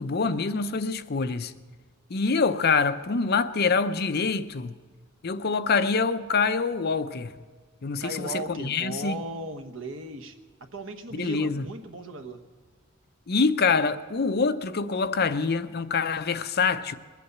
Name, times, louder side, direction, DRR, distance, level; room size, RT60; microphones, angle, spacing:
voice 1, 0.0-1.6 2.1-4.8 5.2-7.4 7.8-9.2 11.1-11.7 13.3-16.9, left 4 dB, 50° left, 0.6 m, -25 dB
voice 2, 8.0-12.4, right 2 dB, 65° right, 1.2 m, -37 dB
21.5 x 8.4 x 8.0 m
head